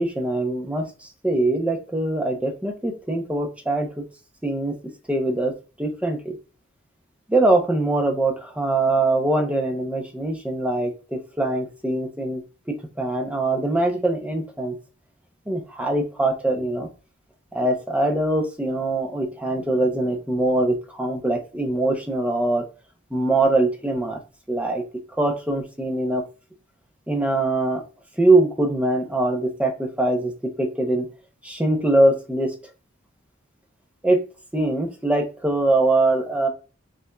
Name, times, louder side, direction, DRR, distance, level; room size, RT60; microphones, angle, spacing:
voice 1, 0.0-4.0 4.4-4.8 5.1-6.4 7.3-12.4 12.7-14.8 15.5-16.9 17.5-22.6 23.1-24.2 24.5-24.8 25.2-26.2 27.1-27.8 28.2-31.1 31.4-32.7 34.0-34.2 34.5-36.5, right 2 dB, 5° right, 3 dB, 0.7 m, -22 dB
6.7 x 2.5 x 2.2 m, 0.34 s
head